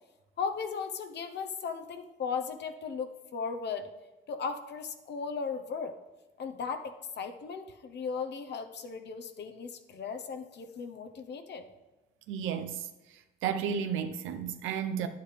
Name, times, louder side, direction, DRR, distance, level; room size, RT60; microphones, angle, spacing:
voice 1, 0.4-3.9 4.3-5.9 6.4-11.6, left 5 dB, 60° left, 0.8 m, -36 dB
voice 2, 12.3-12.8 13.4-15.1, right 8 dB, 90° right, 0.7 m, -32 dB
9.6 x 9.1 x 3.3 m
cardioid pair, 90°, 20 cm